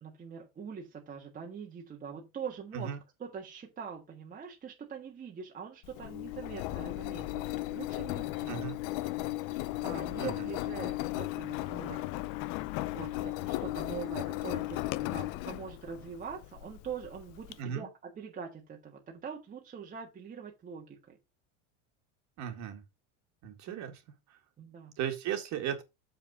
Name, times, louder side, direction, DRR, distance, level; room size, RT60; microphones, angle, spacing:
voice 1, 0.0-8.6 9.8-12.1 12.9-21.2 24.6-24.9, right 6 dB, 20° right, 1.6 m, -43 dB
Engine, 5.8-17.5, left 18 dB, 55° left, 0.7 m, -36 dB
voice 2, 10.2-10.5 17.6-17.9 22.4-22.8 23.4-24.0 25.0-25.8, right 9 dB, 45° right, 2.1 m, -36 dB
7.2 x 5.6 x 4.8 m
cardioid pair, 155°, 39 cm